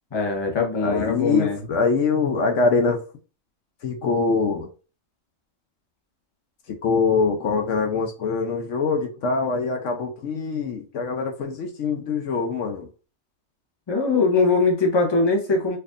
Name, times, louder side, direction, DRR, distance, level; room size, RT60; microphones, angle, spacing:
voice 1, 0.1-1.7 13.9-15.8, left 3 dB, 25° left, 0.8 m, -21 dB
voice 2, 0.8-3.0 3.8-4.7 6.7-12.9, left 4 dB, 70° left, 1.0 m, -23 dB
4.4 x 2.6 x 2.4 m
omnidirectional pair, 1.4 m